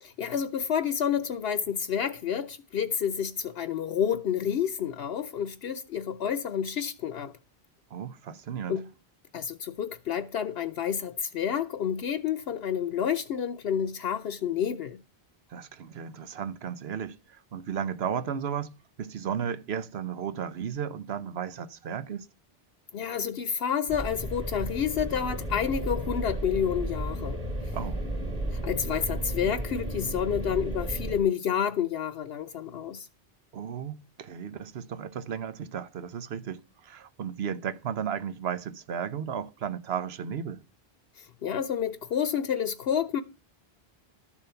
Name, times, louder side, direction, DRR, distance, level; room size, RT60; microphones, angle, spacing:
voice 1, 0.0-7.3 8.7-8.9 9.3-15.0 22.9-27.4 28.5-33.1 41.2-43.2, left 8 dB, 80° left, 1.0 m, -29 dB
voice 2, 7.9-8.8 15.5-18.7 19.0-22.3 27.7-28.0 33.5-40.6, right 8 dB, 80° right, 1.1 m, -34 dB
sound 1, 23.9-31.2, right 1 dB, 35° right, 3.8 m, -33 dB
13.0 x 7.3 x 5.6 m
omnidirectional pair, 1.0 m